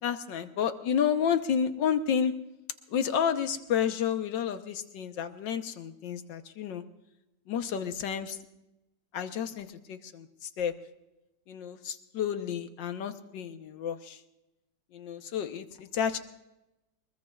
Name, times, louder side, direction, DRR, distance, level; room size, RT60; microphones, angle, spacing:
voice 1, 0.0-2.4 2.9-6.8 7.5-8.4 9.1-10.7 11.5-14.2 14.9-16.2, left 8 dB, 90° left, 8 dB, 1.7 m, -31 dB
23.5 x 21.0 x 2.4 m, 0.94 s
omnidirectional pair, 1.9 m